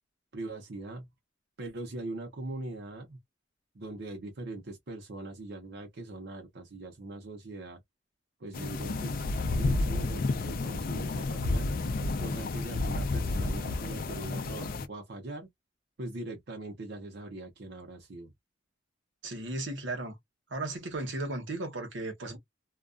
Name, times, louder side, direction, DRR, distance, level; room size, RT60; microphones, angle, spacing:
voice 1, 0.3-1.1 1.6-3.2 3.7-7.8 8.4-11.7 12.2-15.5 16.0-18.3, right 2 dB, 65° right, 0.7 m, -41 dB
sound 1, 8.5-14.9, left 2 dB, 50° left, 0.4 m, -31 dB
voice 2, 19.2-20.2 20.5-22.4, right 2 dB, 85° right, 1.0 m, -35 dB
2.3 x 2.2 x 2.4 m
head